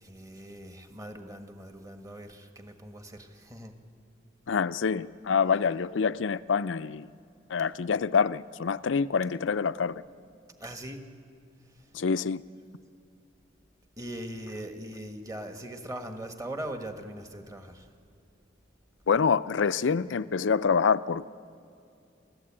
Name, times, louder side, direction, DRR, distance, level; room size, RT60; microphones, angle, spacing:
voice 1, 0.0-3.7 10.6-11.0 14.0-17.9, right 1 dB, 20° right, 5 dB, 1.5 m, -40 dB
voice 2, 4.5-7.1 7.5-10.0 11.9-12.4 19.1-21.3, left 6 dB, 90° left, 15 dB, 0.5 m, -26 dB
28.5 x 14.5 x 8.8 m, 2.5 s
head